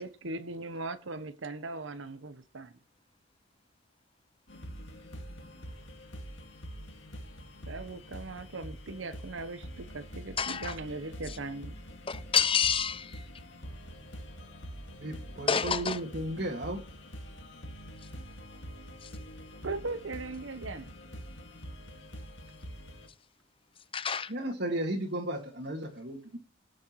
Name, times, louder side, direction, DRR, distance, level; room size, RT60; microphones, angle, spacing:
voice 1, 0.0-2.7 7.7-11.8 19.6-20.9, right 3 dB, 70° right, 0.9 m, -39 dB
sound 1, 4.5-23.1, equal, 65° left, 2.2 m, -45 dB
voice 2, 10.4-10.8 11.3-11.4 12.1-13.3 15.5-16.0 19.0-19.1 23.9-24.3, left 7 dB, 25° left, 0.7 m, -29 dB
voice 3, 14.9-16.8 24.3-26.4, right 1 dB, 55° right, 2.0 m, -34 dB
18.5 x 6.3 x 3.2 m
head